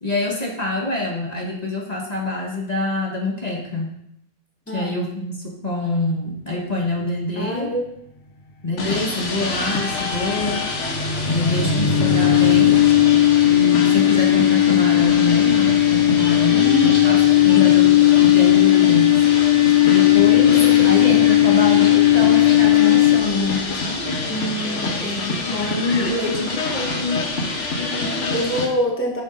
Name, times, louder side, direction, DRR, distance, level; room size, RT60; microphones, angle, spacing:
voice 1, 0.0-3.9 4.7-7.7 8.6-10.7 11.2-12.8 13.5-19.2 19.8-24.2 25.3-27.3 27.8-28.5, left 2 dB, 35° left, -1 dB, 1.5 m, -25 dB
voice 2, 7.3-7.8 16.5-17.0 24.3-25.4 28.3-29.2, equal, 10° left, 0 dB, 1.4 m, -25 dB
sound 1, 8.8-28.7, left 3 dB, 80° left, 1.6 m, -27 dB
sound 2, 9.6-23.6, left 13 dB, 55° left, 1.4 m, -16 dB
10.5 x 7.3 x 3.9 m, 0.75 s
omnidirectional pair, 1.2 m